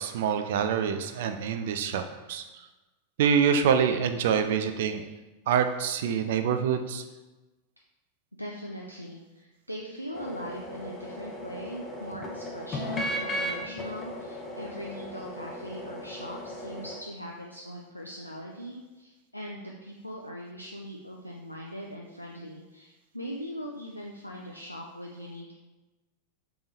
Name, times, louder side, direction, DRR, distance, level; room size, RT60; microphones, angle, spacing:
voice 1, 0.0-2.4 3.2-5.0 5.5-7.0, right 7 dB, 55° right, 8 dB, 0.3 m, -26 dB
voice 2, 8.4-25.5, equal, 90° left, -1 dB, 0.3 m, -40 dB
sound 1, 10.1-17.0, equal, 25° left, 0.6 m, -36 dB
3.4 x 3.4 x 2.7 m, 1.1 s
figure-of-eight pair, 90°, 0 cm